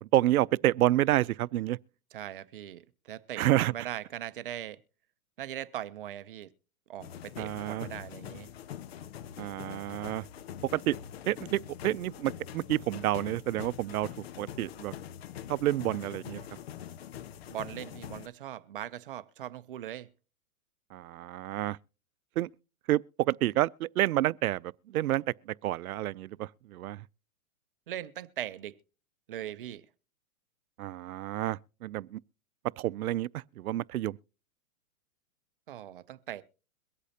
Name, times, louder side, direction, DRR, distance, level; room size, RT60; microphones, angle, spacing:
voice 1, 0.0-1.8 3.4-3.7 7.4-7.9 9.4-10.3 10.7-11.0 11.3-14.1 14.4-14.9 15.5-16.4 20.9-21.8 22.4-22.5 22.9-27.0 30.8-32.2 32.8-34.2, right 14 dB, 85° right, 0.6 m, -29 dB
voice 2, 2.1-4.8 5.4-6.5 6.9-8.5 17.5-20.1 27.9-28.7 29.3-29.8 35.7-36.4, right 11 dB, 40° right, 0.6 m, -40 dB
sound 1, 7.0-18.3, left 10 dB, 50° left, 0.5 m, -44 dB
23.0 x 8.3 x 2.8 m
hypercardioid pair, 170°, 42 cm